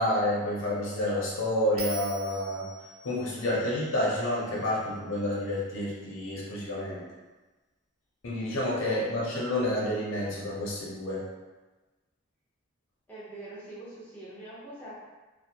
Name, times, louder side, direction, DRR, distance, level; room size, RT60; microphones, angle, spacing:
voice 1, 0.0-2.7 3.0-7.0 8.2-11.2, left 1 dB, 65° left, -5 dB, 0.7 m, -29 dB
Bell, 1.8-5.0, right 4 dB, 70° right, 0.5 m, -44 dB
voice 2, 13.1-15.0, right 1 dB, 10° left, -10 dB, 0.7 m, -44 dB
2.5 x 2.1 x 2.8 m, 1.2 s
head